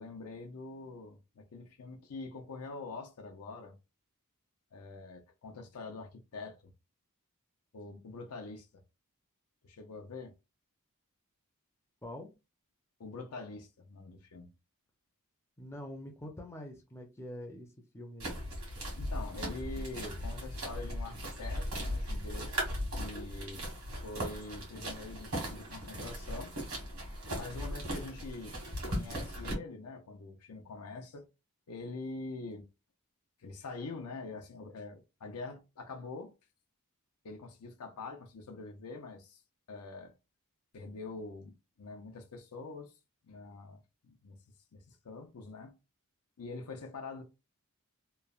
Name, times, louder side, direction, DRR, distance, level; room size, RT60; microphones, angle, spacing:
voice 1, 0.0-3.7 4.7-6.7 7.7-8.8 9.6-10.3 13.0-14.5 19.0-22.5 22.9-23.6 24.0-26.5 27.4-28.6 28.8-31.3 31.7-32.7 33.4-36.3 37.2-39.4 39.7-40.1 40.7-42.9 43.3-44.4 44.7-45.8 46.4-47.2, left 3 dB, 75° left, 0.5 m, -45 dB
voice 2, 15.6-18.4, left 1 dB, 10° left, 0.5 m, -45 dB
sound 1, 18.2-29.5, equal, 70° right, 1.4 m, -38 dB
3.0 x 2.0 x 2.3 m
head